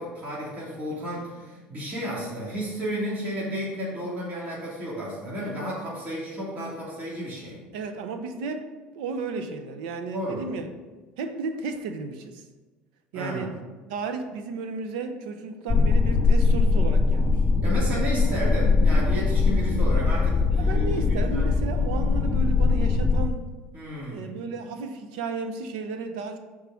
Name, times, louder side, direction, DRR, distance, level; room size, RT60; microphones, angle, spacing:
voice 1, 0.0-7.6 10.1-10.4 13.1-13.5 17.6-21.5 23.7-24.3, equal, 40° right, -7 dB, 2.9 m, -32 dB
voice 2, 7.7-10.7 11.2-12.5 13.1-13.5 13.9-17.4 20.5-23.5 24.1-26.4, right 4 dB, 90° right, 8 dB, 0.8 m, -33 dB
sound 1, 15.7-23.3, left 4 dB, 20° left, 0.5 m, -21 dB
6.9 x 4.8 x 6.3 m, 1.3 s
supercardioid pair, 115°, 4 cm